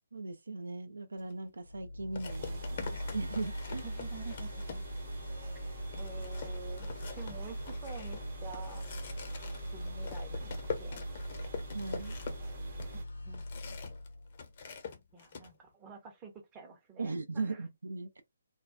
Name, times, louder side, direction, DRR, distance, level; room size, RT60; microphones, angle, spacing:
voice 1, 0.1-3.8 11.7-12.2 17.0-18.2, right 3 dB, 75° right, 0.5 m, -38 dB
sound 1, 1.2-1.3 2.2-5.2 5.6-5.7 5.9-14.1 14.3-15.5, left 6 dB, 45° left, 0.6 m, -44 dB
sound 2, 1.6-14.7, left 2 dB, 75° left, 0.8 m, -42 dB
sound 3, 2.3-13.0, right 5 dB, 45° right, 0.9 m, -44 dB
voice 2, 3.8-4.8 6.0-8.8 9.7-11.0 12.9-13.7 15.1-17.6, right 6 dB, 20° right, 0.6 m, -49 dB
2.3 x 2.2 x 2.4 m
figure-of-eight pair, 140°, 0 cm